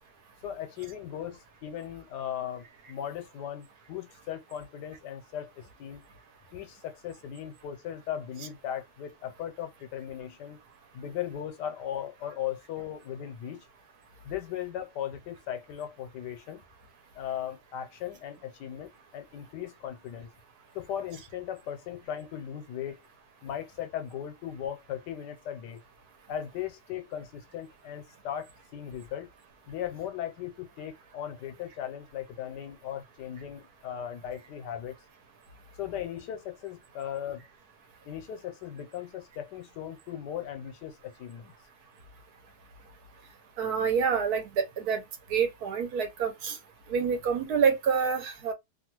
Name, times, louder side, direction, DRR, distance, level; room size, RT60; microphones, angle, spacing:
voice 1, 0.4-6.0 6.5-10.6 10.9-13.7 14.2-16.6 17.1-20.3 20.7-23.0 23.4-25.8 26.3-29.3 29.7-35.0 35.8-37.4 38.0-41.5, left 10 dB, 90° left, 1.2 m, -38 dB
voice 2, 43.6-45.0 45.3-46.6 46.9-48.5, right 6 dB, 70° right, 1.3 m, -27 dB
2.9 x 2.3 x 2.9 m
omnidirectional pair, 1.8 m